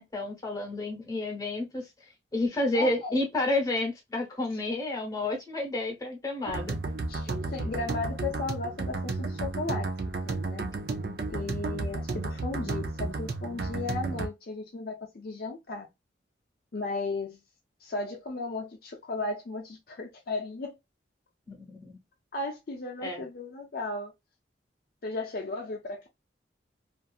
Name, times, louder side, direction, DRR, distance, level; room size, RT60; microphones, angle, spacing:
voice 1, 0.0-1.9 2.3-6.7 21.5-22.0 23.0-23.2, left 2 dB, 20° left, 1.0 m, -30 dB
voice 2, 2.7-3.2 7.1-9.9 10.3-10.6 11.3-15.9 16.7-17.4 17.8-20.8 22.3-24.1 25.0-26.1, left 3 dB, 55° left, 0.5 m, -35 dB
sound 1, 6.5-14.3, right 3 dB, 55° right, 0.4 m, -33 dB
2.7 x 2.5 x 2.3 m
head